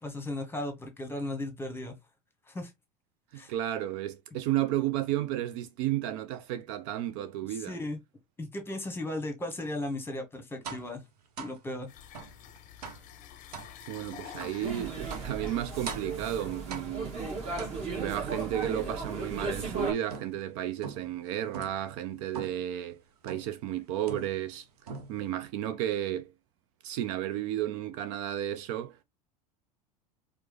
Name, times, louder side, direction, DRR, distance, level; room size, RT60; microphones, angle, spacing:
voice 1, 0.0-1.9 2.5-2.7 3.3-3.5 7.5-8.0 8.4-11.0 11.4-11.9, left 1 dB, 10° left, 1.1 m, -36 dB
voice 2, 3.3-7.8 13.9-17.2 18.0-24.7 25.1-26.3 26.8-29.0, right 12 dB, 50° right, 0.4 m, -33 dB
sound 1, 10.6-10.9 11.4-11.6 12.1-12.4 12.8-13.1 13.5-13.7 14.4-14.6 15.1-15.4 15.9-16.2 16.7-17.1 17.6-18.1 18.6-19.7 20.1-20.5 20.8-21.2 21.5-21.8 22.3-22.7 23.3-23.6 24.1-24.6 24.9-25.3, right 6 dB, 70° right, 0.8 m, -42 dB
sound 2, 11.9-16.9, left 9 dB, 40° left, 0.6 m, -49 dB
sound 3, 14.6-19.9, right 3 dB, 30° right, 1.5 m, -36 dB
4.7 x 2.1 x 3.1 m
figure-of-eight pair, 75°, 21 cm